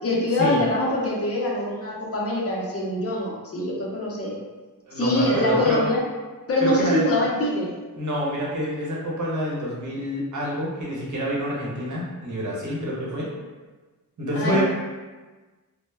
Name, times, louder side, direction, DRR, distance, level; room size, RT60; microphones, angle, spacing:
voice 1, 0.0-4.4 4.9-6.0 6.5-7.7 14.3-14.6, left 1 dB, 40° left, -3 dB, 0.6 m, -24 dB
voice 2, 4.9-5.8 6.6-7.1 8.0-13.3 14.2-14.6, equal, 55° right, -5 dB, 0.8 m, -27 dB
2.1 x 2.0 x 3.2 m, 1.3 s
wide cardioid pair, 90°, 36 cm